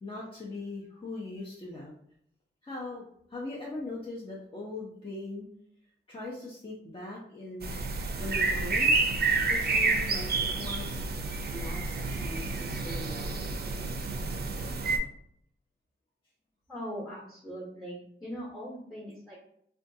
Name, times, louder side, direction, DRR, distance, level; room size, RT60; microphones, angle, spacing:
voice 1, 0.0-1.9 2.6-5.5 6.1-7.8 8.2-9.0 9.5-11.0 11.5-13.6, left 2 dB, 25° left, -5 dB, 0.6 m, -40 dB
sound 1, 7.6-15.0, right 3 dB, 50° right, 0.4 m, -29 dB
voice 2, 16.7-19.4, equal, 5° right, -6 dB, 0.9 m, -40 dB
3.7 x 2.3 x 2.7 m, 0.69 s
wide cardioid pair, 140°, 21 cm